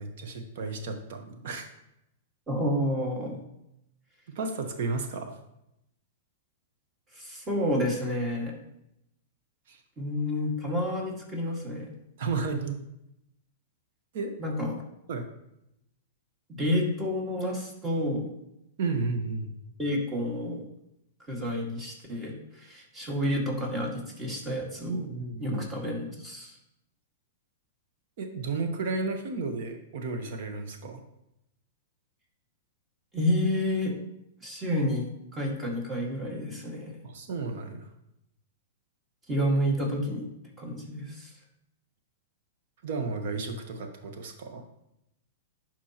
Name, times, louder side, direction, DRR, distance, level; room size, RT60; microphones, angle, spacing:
voice 1, 0.0-1.6 4.3-5.3 9.7-9.8 12.2-12.8 14.1-14.3 15.1-15.3 18.8-19.5 24.9-25.6 28.2-31.0 37.0-37.9 42.8-44.6, right 3 dB, 60° right, 5 dB, 1.2 m, -33 dB
voice 2, 2.5-3.4 7.1-8.6 10.0-11.9 14.4-14.8 16.5-18.3 19.8-20.6 21.3-22.3 22.6-25.1 25.4-26.6 33.1-33.9 34.4-36.9 39.3-40.3 40.6-41.3, equal, 15° right, -1 dB, 1.9 m, -29 dB
11.0 x 4.5 x 3.0 m, 0.83 s
hypercardioid pair, 130°, 0 cm